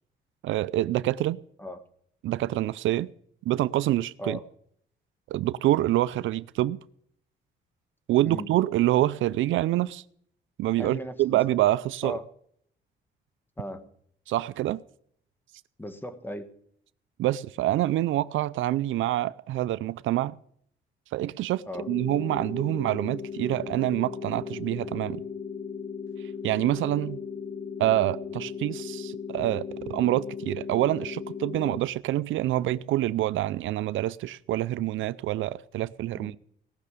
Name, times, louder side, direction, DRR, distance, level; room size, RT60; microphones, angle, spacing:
voice 1, 0.4-1.4 2.2-3.1 3.5-4.4 5.3-6.8 8.1-10.0 10.6-12.2 14.3-14.8 17.2-20.4 21.1-25.2 26.4-27.2 27.8-36.4, right 14 dB, 75° right, 0.5 m, -26 dB
voice 2, 10.8-11.4 12.0-12.3 13.6-13.9 15.8-16.5 21.7-21.9 36.1-36.4, equal, 10° left, 1.5 m, -37 dB
sound 1, 21.8-31.8, left 6 dB, 30° left, 1.1 m, -37 dB
18.0 x 6.7 x 8.2 m
cardioid pair, 90°, 20 cm